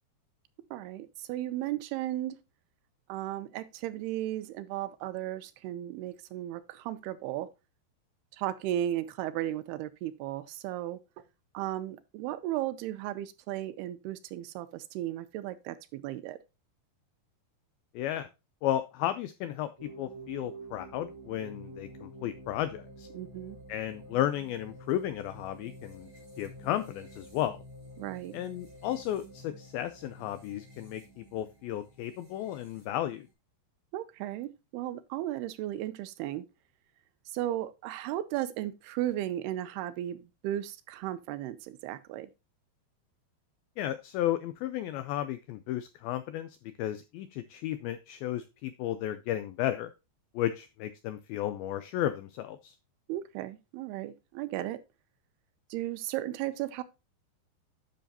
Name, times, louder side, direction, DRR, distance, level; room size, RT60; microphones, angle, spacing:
voice 1, 0.7-2.4 3.1-7.5 8.3-11.0 11.5-16.4 23.1-23.6 28.0-28.4 33.9-36.5 37.3-42.3 53.1-54.8 55.7-56.8, right 13 dB, 80° right, 2.5 m, -35 dB
voice 2, 17.9-18.3 18.6-23.1 23.7-26.1 26.4-27.6 28.3-33.3 43.8-49.9 50.3-52.8, left 12 dB, 85° left, 2.1 m, -33 dB
sound 1, 19.8-33.3, right 1 dB, 10° right, 3.4 m, -49 dB
10.0 x 6.3 x 2.8 m
omnidirectional pair, 4.8 m